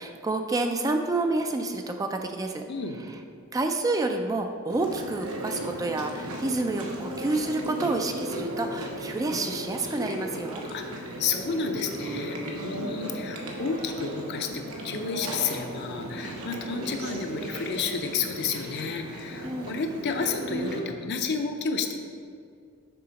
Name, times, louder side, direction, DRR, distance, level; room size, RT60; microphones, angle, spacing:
voice 1, 0.0-2.6 3.5-10.6 19.4-19.7, right 2 dB, 15° right, 5 dB, 0.3 m, -29 dB
voice 2, 2.7-3.0 10.7-21.9, left 5 dB, 50° left, 5 dB, 0.6 m, -31 dB
Chewing mastication, 4.7-20.8, right 1 dB, 80° right, 1.1 m, -36 dB
6.8 x 3.8 x 5.1 m, 2.3 s
head